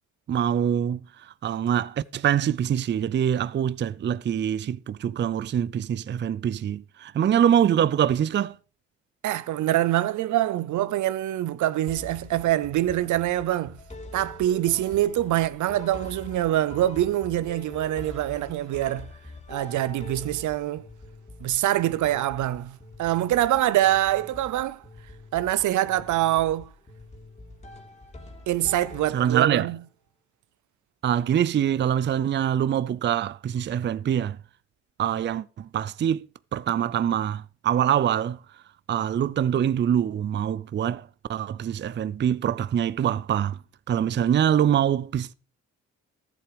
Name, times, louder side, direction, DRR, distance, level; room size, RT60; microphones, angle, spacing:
voice 1, 0.3-8.6 29.1-29.7 31.0-34.4 35.0-36.2 36.5-38.4 38.9-43.6 43.9-45.3, right 9 dB, 35° right, 0.5 m, -24 dB
voice 2, 9.2-13.8 14.1-19.1 19.5-20.9 21.4-24.8 25.3-26.7 28.5-29.8, right 13 dB, 75° right, 0.8 m, -25 dB
sound 1, 11.9-29.7, left 2 dB, 20° left, 3.0 m, -44 dB
14.0 x 7.8 x 5.1 m
cardioid pair, 90°, 30 cm